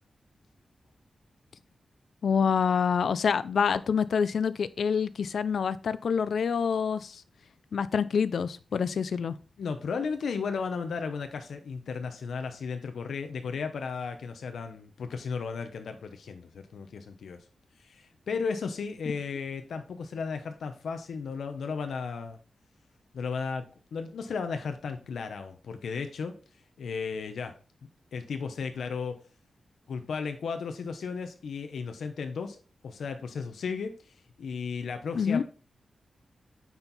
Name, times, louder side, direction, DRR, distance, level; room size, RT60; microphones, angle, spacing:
voice 1, 2.2-7.2 7.7-9.3 35.1-35.4, left 6 dB, 75° left, 15 dB, 0.5 m, -27 dB
voice 2, 9.6-17.4 17.8-22.4 23.1-23.6 23.9-26.3 26.8-27.6 28.1-29.2 29.9-32.6 32.8-33.9 34.4-35.4, left 5 dB, 90° left, 7 dB, 0.9 m, -34 dB
9.4 x 4.5 x 4.0 m, 0.35 s
wide cardioid pair, 130°, 0 cm